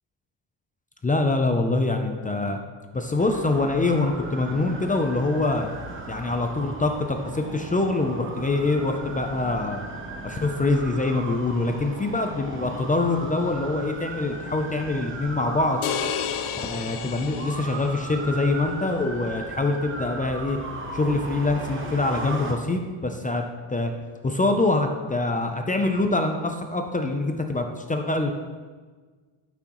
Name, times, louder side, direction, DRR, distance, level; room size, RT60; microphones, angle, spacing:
voice 1, 1.0-2.6 2.9-5.7 6.1-9.8 10.2-15.8 16.7-20.6 20.9-23.4 23.7-23.9 24.2-28.3, left 2 dB, 20° left, 4 dB, 0.4 m, -24 dB
sound 1, 3.2-22.5, right 2 dB, 25° right, 0.9 m, -37 dB
sound 2, 15.8-18.2, left 9 dB, 80° left, 0.6 m, -31 dB
11.5 x 6.1 x 3.0 m, 1.4 s
cardioid pair, 165°, 49 cm